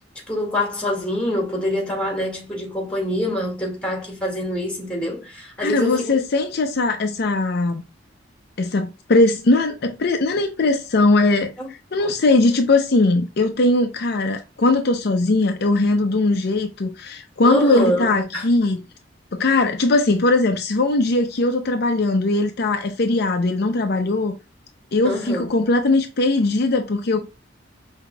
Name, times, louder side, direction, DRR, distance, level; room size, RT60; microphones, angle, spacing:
voice 1, 0.3-6.2 11.6-11.7 12.0-12.1 17.4-18.5 25.0-25.5, left 1 dB, 5° left, 1.9 m, -25 dB
voice 2, 5.6-7.8 8.6-18.8 19.3-24.3 24.9-27.2, left 2 dB, 60° left, 0.6 m, -20 dB
5.8 x 2.8 x 2.2 m
head